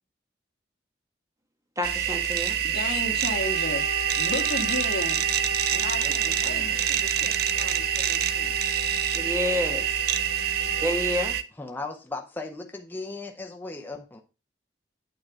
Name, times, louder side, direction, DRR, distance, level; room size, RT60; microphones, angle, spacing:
voice 1, 1.8-2.6 9.1-9.9 10.8-11.4, left 1 dB, 20° right, 4 dB, 1.4 m, -28 dB
sound 1, 1.8-11.4, right 10 dB, 60° right, 0.6 m, -26 dB
voice 2, 2.6-3.8 4.2-8.5, left 2 dB, 60° left, 3 dB, 1.7 m, -34 dB
Wind instrument woodwind instrument, 3.4-11.4, left 6 dB, 85° left, 1.2 m, -39 dB
voice 3, 5.9-6.7 11.6-14.2, left 3 dB, 10° left, 3 dB, 0.6 m, -37 dB
8.9 x 3.7 x 6.0 m, 0.32 s
head